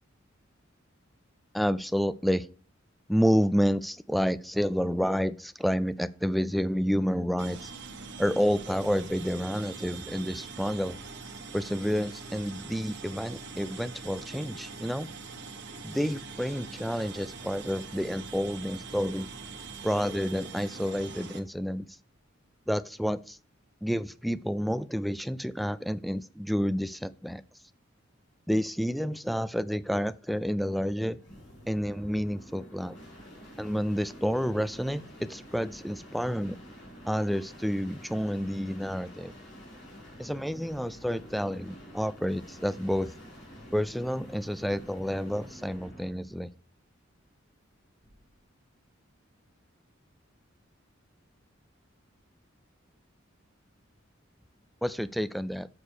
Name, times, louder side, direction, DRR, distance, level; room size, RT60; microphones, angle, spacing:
voice 1, 1.5-2.5 3.1-7.7 8.2-11.0 11.5-15.1 15.8-19.3 19.8-21.9 22.7-23.4 23.8-27.4 28.5-31.2 31.7-32.9 33.6-36.6 37.1-39.3 40.2-43.1 43.7-46.5 54.8-55.7, equal, ahead, 15 dB, 0.3 m, -29 dB
sound 1, 7.4-21.4, right 4 dB, 60° right, 1.2 m, -43 dB
sound 2, 31.1-46.2 48.0-48.4, equal, 60° left, 3.9 m, -49 dB
6.8 x 6.4 x 4.4 m, 0.40 s
head